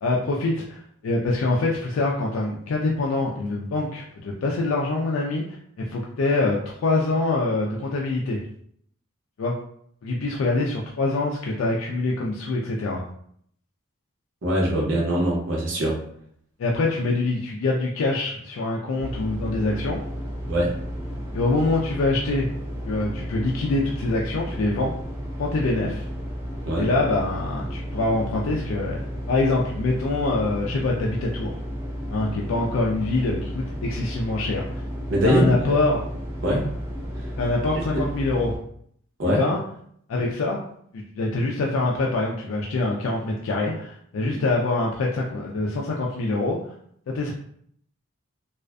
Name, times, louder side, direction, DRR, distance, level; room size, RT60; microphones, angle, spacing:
voice 1, 0.0-5.4 5.9-8.4 9.4-9.5 10.0-13.0 16.6-20.0 21.3-22.5 22.8-24.9 25.4-26.0 26.8-29.0 29.3-31.6 32.1-34.8 35.2-36.0 36.5-36.6 37.4-38.5 39.2-39.6 40.1-40.6 40.9-46.7 47.1-47.3, left 2 dB, 80° left, -2 dB, 0.4 m, -24 dB
voice 2, 14.4-16.0 20.5-20.7 26.7-26.9 35.1-35.5 36.4-36.7 37.9-38.0 39.2-39.4, right 1 dB, 65° right, -2 dB, 0.7 m, -22 dB
sound 1, 19.0-38.6, equal, 10° right, 0.4 m, -33 dB
2.4 x 2.4 x 2.2 m, 0.66 s
head